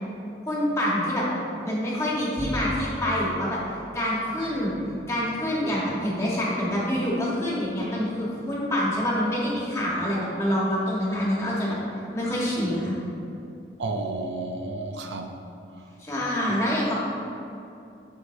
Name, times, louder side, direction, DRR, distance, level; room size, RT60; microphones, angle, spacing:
voice 1, 0.5-1.3 1.6-3.6 3.9-4.7 5.1-11.8 12.1-12.9 16.0-17.0, equal, 15° left, -6 dB, 1.4 m, -26 dB
Bowed string instrument, 2.4-8.8, equal, ahead, 1.5 m, -41 dB
voice 2, 13.8-15.3, right 2 dB, 85° right, 4 dB, 0.6 m, -31 dB
8.0 x 6.5 x 2.7 m, 2.6 s
head